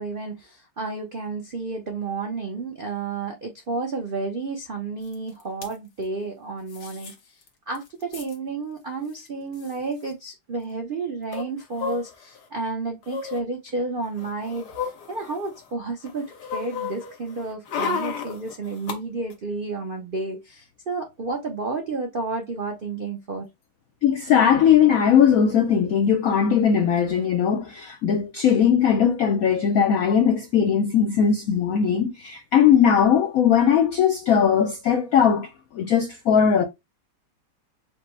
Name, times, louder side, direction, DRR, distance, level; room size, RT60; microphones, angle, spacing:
voice 1, 0.0-7.4 7.7-23.5, right 3 dB, 85° right, 0.4 m, -31 dB
Pushing The Straw, 5.1-5.2 5.4-5.7 6.7-7.1 7.5-7.6 7.8-8.4 9.2-9.3 9.5-9.7 11.3-12.5 13.0-13.4 14.0-15.7 16.0-19.0 19.3-19.4, left 5 dB, 60° left, 1.5 m, -33 dB
voice 2, 24.0-36.6, left 8 dB, 85° left, 0.7 m, -19 dB
5.0 x 2.0 x 4.5 m
omnidirectional pair, 2.1 m